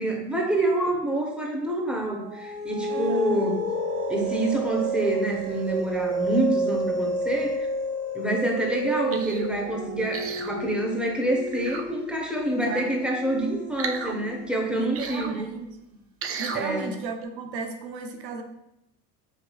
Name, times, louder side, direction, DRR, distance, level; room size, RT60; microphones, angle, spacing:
voice 1, 0.0-3.6 4.1-7.7 8.1-15.5 16.5-16.9, right 1 dB, ahead, 0 dB, 1.1 m, -27 dB
sound 1, 2.2-15.0, right 1 dB, 60° right, 1.3 m, -30 dB
voice 2, 2.9-3.4 12.6-12.9 14.7-16.0 16.4-18.4, right 4 dB, 85° right, 5 dB, 0.6 m, -35 dB
sound 2, 9.1-9.5 10.1-10.5 11.5-11.8 13.8-14.1 14.9-15.3 16.2-16.6 17.2-17.3, right 6 dB, 30° right, 0.4 m, -34 dB
6.5 x 3.1 x 2.4 m, 0.84 s
hypercardioid pair, 65°, 49 cm